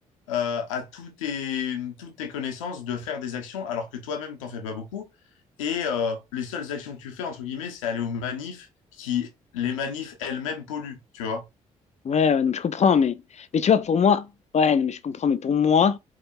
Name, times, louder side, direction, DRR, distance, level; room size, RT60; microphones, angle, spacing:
voice 1, 0.3-5.1 5.6-8.7 9.0-11.4, left 7 dB, 75° left, 1.1 m, -31 dB
voice 2, 12.0-14.3 14.5-16.0, left 6 dB, 40° left, 0.8 m, -21 dB
4.9 x 4.7 x 4.4 m
figure-of-eight pair, 40°, 17 cm